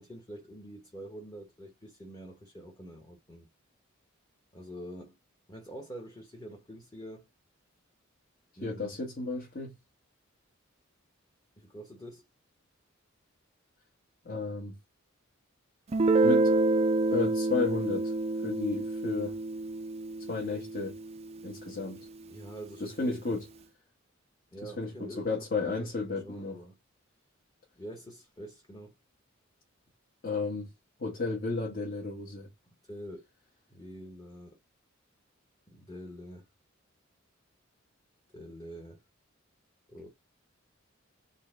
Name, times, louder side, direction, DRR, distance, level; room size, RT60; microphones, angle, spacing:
voice 1, 0.0-3.5 4.5-5.2 5.5-7.3 8.6-9.0 11.6-12.2 22.3-23.4 24.5-26.8 27.8-28.9 32.9-33.2 33.7-34.6 35.7-36.4 38.3-39.0 39.9-40.1, right 1 dB, 20° left, 1.0 m, -46 dB
voice 2, 8.6-9.8 14.2-14.7 16.2-16.5 17.1-18.1 18.4-19.4 20.3-21.0 21.4-22.1 22.8-23.5 24.6-26.6 30.2-30.7 31.0-32.5, left 3 dB, 45° left, 1.2 m, -33 dB
Guitar, 15.9-21.4, right 2 dB, 30° right, 0.4 m, -28 dB
3.9 x 2.2 x 3.7 m
head